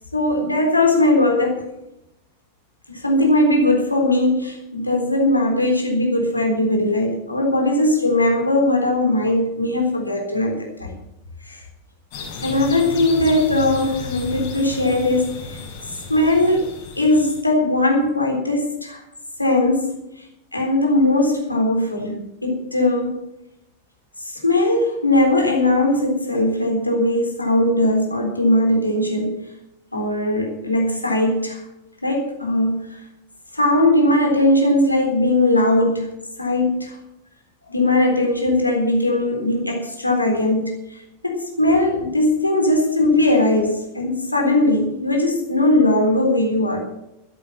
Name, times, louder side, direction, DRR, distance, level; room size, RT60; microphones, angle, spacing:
voice 1, 0.1-1.6 2.9-11.0 11.5-11.6 12.4-15.6 16.1-19.0 19.4-20.0 20.5-23.2 24.2-29.4 29.9-31.6 32.0-33.0 33.5-36.1 36.4-37.0 37.7-46.8, left 1 dB, 85° left, 1 dB, 3.7 m, -19 dB
sound 1, 12.1-17.4, left 5 dB, 50° left, 5.4 m, -34 dB
13.5 x 10.5 x 7.1 m, 0.87 s
figure-of-eight pair, 90°, 0 cm